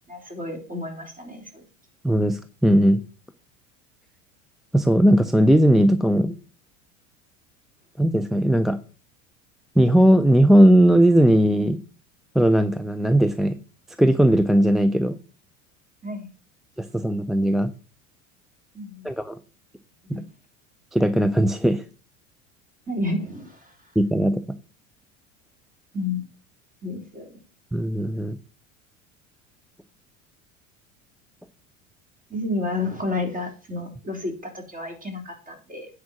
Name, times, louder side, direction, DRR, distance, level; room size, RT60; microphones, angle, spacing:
voice 1, 0.1-1.6 16.0-16.3 18.7-19.1 20.0-20.2 22.9-23.8 25.9-26.3 26.8-27.3 32.3-35.9, left 2 dB, 20° right, 3 dB, 3.5 m, -31 dB
voice 2, 2.0-3.0 4.7-6.3 8.0-8.8 9.8-11.8 12.3-13.6 14.0-15.2 16.8-17.7 19.0-19.4 20.1-20.2 20.9-21.8 24.0-24.4 27.7-28.4, right 1 dB, ahead, 9 dB, 0.3 m, -18 dB
9.4 x 4.8 x 6.1 m, 0.37 s
hypercardioid pair, 80°, 39 cm